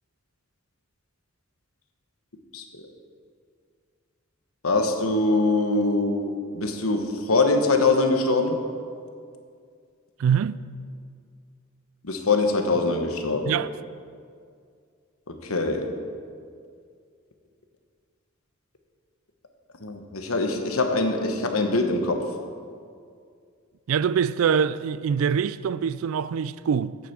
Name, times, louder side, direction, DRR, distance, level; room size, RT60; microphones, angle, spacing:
voice 1, 4.6-8.6 12.0-13.5 15.3-15.9 19.8-22.2, left 3 dB, 85° left, 1.2 m, -23 dB
voice 2, 10.2-10.6 13.5-13.7 23.9-27.0, right 7 dB, 75° right, 0.3 m, -24 dB
8.4 x 7.8 x 7.4 m
head